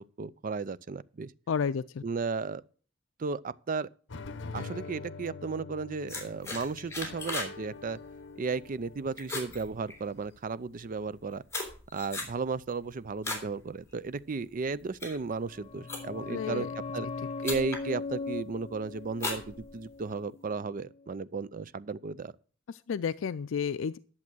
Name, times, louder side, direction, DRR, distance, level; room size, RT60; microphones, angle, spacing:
voice 1, 0.0-1.3 2.0-2.6 3.2-3.9 4.5-8.0 8.4-11.4 11.9-16.7 16.9-17.1 17.4-22.3, right 4 dB, 45° right, 0.5 m, -34 dB
voice 2, 1.5-2.0 16.3-16.7 22.7-24.0, left 6 dB, 80° left, 0.4 m, -31 dB
sound 1, 4.1-10.3, left 3 dB, 65° left, 0.8 m, -45 dB
sound 2, 6.1-7.6 7.9-8.2 8.6-8.9 9.2-10.4 11.0-13.5 13.9-14.2 14.7-16.4 17.1-17.2 17.4-17.9 18.3-18.7 19.1-20.1, left 2 dB, 15° left, 3.4 m, -37 dB
sound 3, 15.4-20.8 21.0-21.1, left 4 dB, 30° left, 0.5 m, -40 dB
11.0 x 7.3 x 6.1 m
head